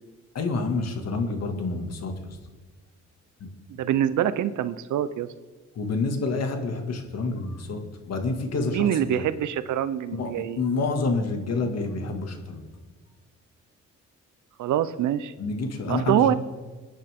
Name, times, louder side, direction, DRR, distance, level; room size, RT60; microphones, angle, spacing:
voice 1, 0.3-2.4 3.4-3.5 5.8-9.3 10.1-12.7 15.4-16.4, left 3 dB, 55° left, 4 dB, 2.2 m, -28 dB
voice 2, 3.7-5.3 8.7-10.6 14.6-15.3 15.9-16.3, right 11 dB, 75° right, 13 dB, 0.7 m, -25 dB
21.5 x 10.0 x 3.7 m, 1.3 s
cardioid pair, 90°, 30 cm